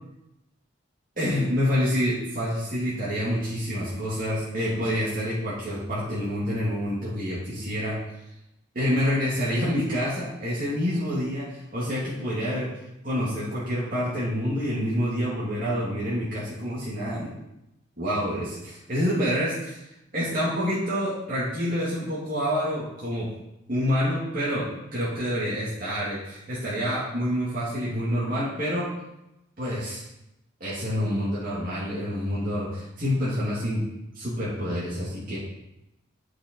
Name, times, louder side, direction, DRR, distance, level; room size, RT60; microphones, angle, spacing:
voice 1, 1.2-8.0 8.7-12.7 13.0-17.4 18.0-19.8 20.1-23.3 23.7-24.7 24.9-28.9 29.6-30.0 30.6-33.8 34.1-35.4, equal, 45° right, -9 dB, 2.7 m, -27 dB
9.2 x 6.2 x 4.6 m, 0.89 s
head